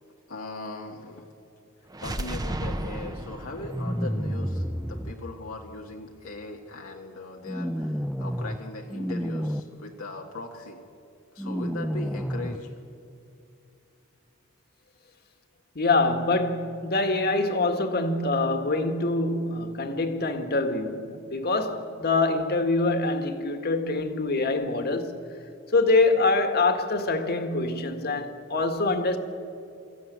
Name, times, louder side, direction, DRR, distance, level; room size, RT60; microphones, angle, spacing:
voice 1, 0.3-1.2 2.0-10.8 11.3-12.7, left 2 dB, 90° left, 1.7 m, -39 dB
sound 1, 1.9-5.8, right 1 dB, 20° right, 0.9 m, -35 dB
sound 2, 3.7-5.1 7.5-8.6 8.9-9.6 11.4-12.6, equal, ahead, 0.5 m, -30 dB
voice 2, 15.8-25.2 25.7-29.2, left 3 dB, 50° left, 1.7 m, -25 dB
25.0 x 14.5 x 9.3 m
head